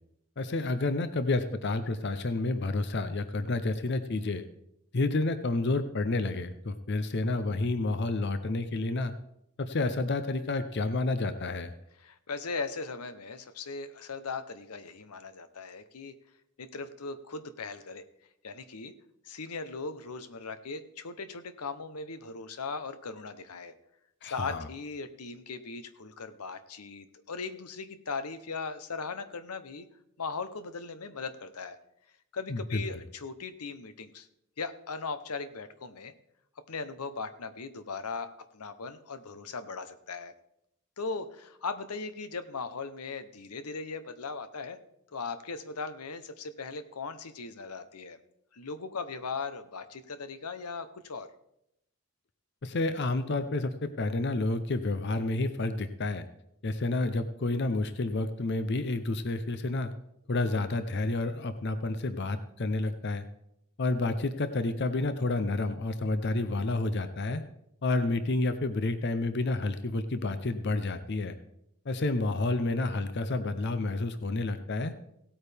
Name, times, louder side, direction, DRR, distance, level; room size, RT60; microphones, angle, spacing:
voice 1, 0.4-4.4 4.9-9.1 9.6-11.7 24.2-24.7 32.5-32.8 52.6-56.3 56.6-59.9 60.3-63.3 63.8-67.4 67.8-71.4 71.9-74.9, left 2 dB, 50° left, 11 dB, 0.6 m, -30 dB
voice 2, 12.0-16.1 16.6-18.0 18.4-18.9 19.2-23.7 24.2-29.9 30.2-31.8 32.3-34.3 34.6-36.1 36.7-40.3 41.0-44.8 45.1-48.2 48.5-51.3, left 4 dB, 90° left, 11 dB, 0.9 m, -38 dB
17.0 x 8.7 x 3.4 m, 0.79 s
head